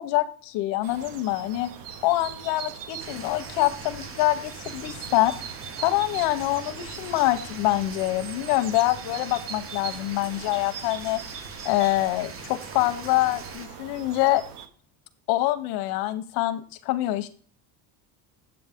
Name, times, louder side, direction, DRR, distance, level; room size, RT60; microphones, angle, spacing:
voice 1, 0.0-1.7 2.0-5.4 5.8-11.2 11.6-14.4 15.3-17.3, left 16 dB, 85° left, 7 dB, 0.8 m, -25 dB
sound 1, 0.8-14.7, right 7 dB, 90° right, 1.1 m, -41 dB
sound 2, 3.0-13.7, right 4 dB, 35° right, 0.9 m, -42 dB
8.0 x 7.8 x 3.5 m, 0.42 s
cardioid pair, 135°, 40 cm